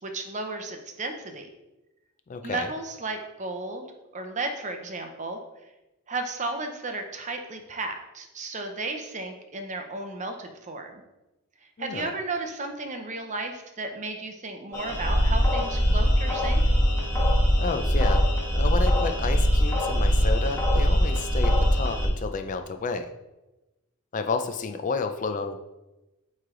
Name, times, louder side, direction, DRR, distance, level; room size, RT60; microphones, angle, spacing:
voice 1, 0.0-1.5 2.4-3.9 4.1-5.4 6.1-11.0 11.8-16.6, right 3 dB, 35° right, 5 dB, 0.7 m, -34 dB
voice 2, 2.3-2.7 11.8-12.1 17.6-18.2 18.6-23.1 24.1-25.6, left 4 dB, 35° left, 7 dB, 0.4 m, -31 dB
sound 1, 14.7-22.1, equal, 15° left, 1.3 m, -22 dB
9.2 x 3.3 x 3.7 m, 1.0 s
head